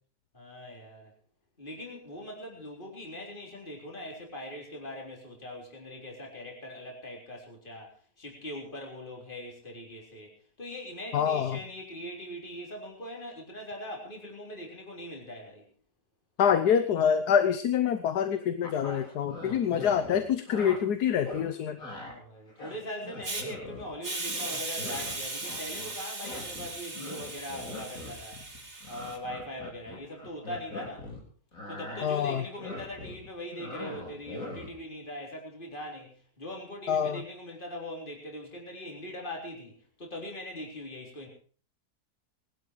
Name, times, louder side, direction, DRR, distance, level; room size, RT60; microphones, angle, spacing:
voice 1, 0.3-1.1 1.6-10.3 10.6-15.6 21.8-28.4 28.9-31.1 31.7-39.7 40.0-41.3, left 1 dB, 30° left, 0 dB, 4.1 m, -41 dB
voice 2, 11.1-11.6 16.4-21.8 32.0-32.4 36.9-37.2, left 8 dB, 70° left, 10 dB, 1.5 m, -26 dB
sound 1, 18.6-20.8 21.2-21.4 21.8-22.1 22.5-24.0 24.3-26.0 26.2-31.2 31.5-34.8, left 2 dB, 55° left, 4.7 m, -42 dB
Hiss, 23.2-23.4 24.0-29.2, right 2 dB, 40° right, 3.3 m, -37 dB
20.0 x 12.0 x 4.7 m, 0.42 s
omnidirectional pair, 1.8 m